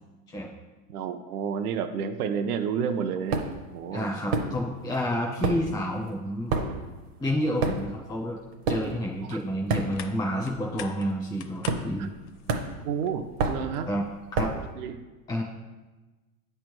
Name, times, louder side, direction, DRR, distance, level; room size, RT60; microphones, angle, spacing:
voice 1, 0.9-3.5 3.7-4.1 9.2-9.4 12.0-12.1 12.8-13.9 14.7-15.0, right 7 dB, 70° right, 8 dB, 0.8 m, -30 dB
sound 1, 3.3-3.7 4.3-4.9 5.2-10.3 10.6-10.9 11.6-12.2 12.5-14.7, right 4 dB, 40° right, 0.7 m, -30 dB
voice 2, 3.9-6.6 7.2-8.4 8.7-12.1 13.9-14.0 14.3-14.5 15.3-15.4, equal, 10° left, -1 dB, 0.5 m, -29 dB
sound 2, 9.0-14.2, left 7 dB, 50° left, 0.6 m, -46 dB
8.9 x 3.4 x 6.0 m, 1.2 s
supercardioid pair, 170°, 46 cm